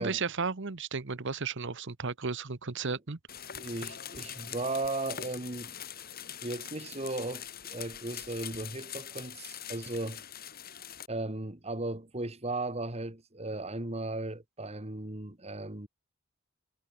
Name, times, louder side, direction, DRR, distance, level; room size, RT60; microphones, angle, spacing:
voice 1, 0.0-3.2, right 4 dB, 60° right, 1.1 m, -34 dB
sound 1, 3.3-11.1, left 9 dB, 45° left, 4.8 m, -43 dB
voice 2, 3.6-5.7 6.4-10.2 11.1-15.9, right 2 dB, 30° right, 2.1 m, -36 dB
head